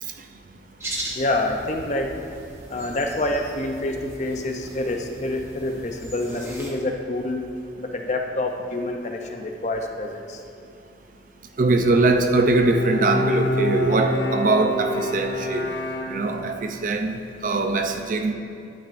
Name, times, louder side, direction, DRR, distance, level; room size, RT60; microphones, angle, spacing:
sound 1, 0.8-6.7, right 1 dB, 15° right, 1.1 m, -38 dB
voice 1, 1.1-2.2 2.7-7.5 7.8-10.4, left 2 dB, 40° left, 3 dB, 0.6 m, -27 dB
voice 2, 11.6-15.6 16.1-18.3, right 2 dB, 45° right, 6 dB, 0.5 m, -21 dB
Bowed string instrument, 12.3-16.7, left 1 dB, 85° left, 0.8 m, -27 dB
11.5 x 9.1 x 2.6 m, 2.4 s
head